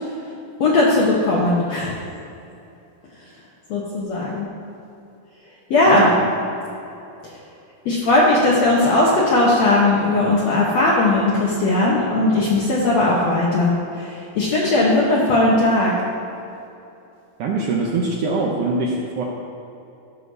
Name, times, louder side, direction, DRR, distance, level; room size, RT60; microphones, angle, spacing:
voice 1, 0.6-1.9 3.7-4.5 5.7-6.1 7.8-15.9, left 2 dB, 85° left, -6 dB, 1.5 m, -18 dB
voice 2, 17.4-19.2, right 3 dB, 80° right, -2 dB, 1.8 m, -23 dB
16.0 x 6.1 x 2.7 m, 2.7 s
omnidirectional pair, 4.5 m